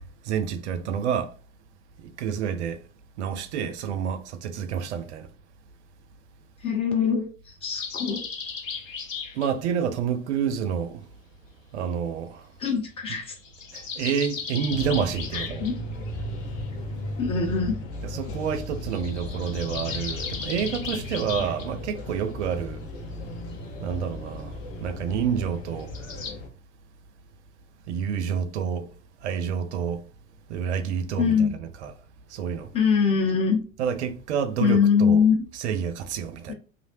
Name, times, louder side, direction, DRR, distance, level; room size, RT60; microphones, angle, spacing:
voice 1, 0.3-1.3 2.2-2.8 3.2-5.3 9.3-11.0 11.7-12.4 13.7-15.7 18.0-22.8 23.8-25.9 27.9-28.9 29.2-30.0 30.5-31.9 32.3-32.7 33.8-35.2 35.5-36.5, right 7 dB, 60° right, 0.5 m, -28 dB
voice 2, 6.6-8.2 12.6-13.3 15.3-15.7 17.2-17.8 31.2-31.5 32.7-33.6 34.6-35.4, left 6 dB, 15° left, 0.3 m, -23 dB
sound 1, 7.8-9.5 13.2-15.7 18.9-21.7 25.8-26.3, left 5 dB, 75° left, 0.8 m, -36 dB
sound 2, 14.7-26.5, left 1 dB, 35° left, 0.9 m, -36 dB
3.1 x 2.6 x 2.7 m
figure-of-eight pair, 80°, 39 cm